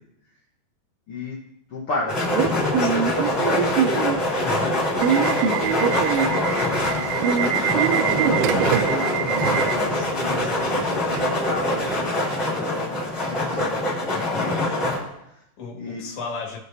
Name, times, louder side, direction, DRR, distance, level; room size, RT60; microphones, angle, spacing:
voice 1, 1.1-1.4 1.7-2.3 2.7-3.8 4.5-5.0 5.4-14.2 14.7-15.4 15.7-16.1, left 3 dB, 75° left, -5 dB, 1.3 m, -35 dB
sound 1, 2.1-15.0, left 1 dB, 15° left, 2.7 m, -24 dB
Subway metro underground / Alarm, 2.3-12.1, right 9 dB, 85° right, 2.6 m, -25 dB
voice 2, 4.4-4.7 14.1-14.8 15.6-16.6, left 4 dB, 55° left, -1 dB, 2.7 m, -35 dB
19.5 x 6.5 x 2.7 m, 0.82 s
omnidirectional pair, 4.7 m